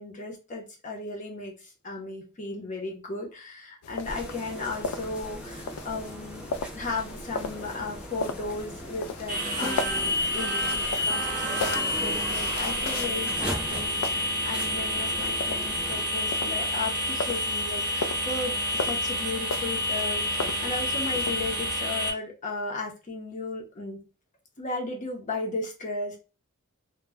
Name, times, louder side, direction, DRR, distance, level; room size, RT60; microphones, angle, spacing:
voice 1, 0.0-24.0 24.6-26.2, left 3 dB, 35° left, 0 dB, 0.6 m, -35 dB
sound 1, 3.8-21.8, left 4 dB, 80° left, 0.3 m, -37 dB
sound 2, 4.0-16.1, right 2 dB, 5° right, 0.4 m, -38 dB
sound 3, 9.3-22.1, left 1 dB, 35° right, 0.7 m, -29 dB
2.1 x 2.1 x 3.4 m, 0.31 s
head